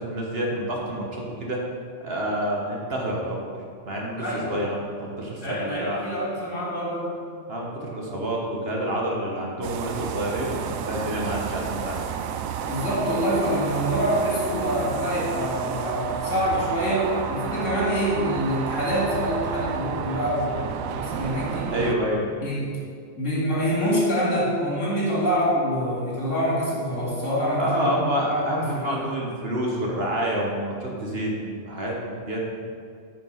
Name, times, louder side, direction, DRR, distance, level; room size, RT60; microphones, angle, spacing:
voice 1, 0.0-1.6 2.0-3.4 3.9-6.0 7.5-12.1 21.7-22.3 25.1-25.2 27.6-32.5, equal, 50° right, -2 dB, 1.4 m, -28 dB
voice 2, 4.2-4.6 5.4-7.1 12.6-20.6 20.9-21.7 22.4-22.7 23.2-27.9 28.3-29.0, equal, 65° left, -6 dB, 2.8 m, -25 dB
sound 1, 9.6-21.9, right 7 dB, 85° right, 1.0 m, -31 dB
9.1 x 5.4 x 5.6 m, 2.2 s
omnidirectional pair, 1.4 m